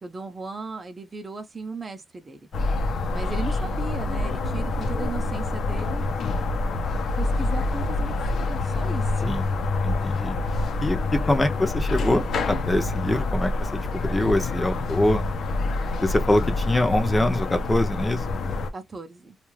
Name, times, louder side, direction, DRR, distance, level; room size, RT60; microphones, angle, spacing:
voice 1, 0.0-2.5 3.1-6.0 7.2-9.2 18.7-19.4, right 3 dB, 30° right, 0.7 m, -36 dB
sound 1, 2.5-18.7, left 2 dB, 70° left, 0.7 m, -26 dB
voice 2, 9.8-10.3 10.8-15.2 16.0-18.2, left 1 dB, 15° left, 0.7 m, -24 dB
2.6 x 2.4 x 3.1 m
cardioid pair, 100°, 0 cm